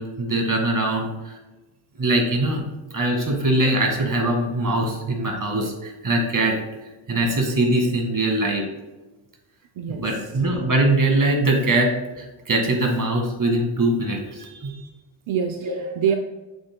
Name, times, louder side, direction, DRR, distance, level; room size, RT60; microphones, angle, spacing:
voice 1, 0.0-1.4 2.0-2.6 2.9-6.6 7.1-8.6 9.9-14.7 15.6-15.7, right 2 dB, 40° right, 2 dB, 1.9 m, -22 dB
voice 2, 14.4-14.9 15.3-16.1, right 8 dB, 75° right, 5 dB, 0.7 m, -26 dB
7.8 x 7.0 x 2.2 m, 1.2 s
cardioid pair, 80°, 49 cm